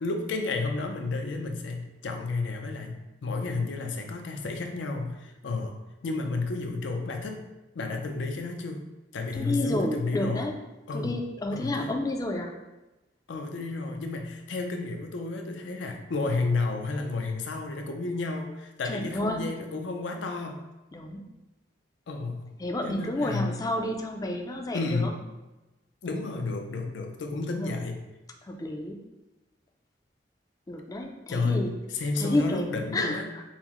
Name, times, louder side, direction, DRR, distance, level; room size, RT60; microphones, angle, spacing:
voice 1, 0.0-5.7 6.0-7.4 7.7-8.9 9.1-10.5 10.9-11.2 11.5-11.9 13.3-20.6 22.1-22.5 22.8-23.5 24.7-25.1 26.0-28.0 31.3-31.7 31.9-33.3, left 3 dB, 90° left, 4 dB, 0.5 m, -31 dB
voice 2, 9.3-10.6 10.9-12.6 18.8-19.5 20.9-21.3 22.6-25.2 27.6-27.7 28.4-29.0 30.7-31.7 32.2-33.4, left 1 dB, 20° left, 3 dB, 0.3 m, -30 dB
5.6 x 2.0 x 3.0 m, 1.1 s
head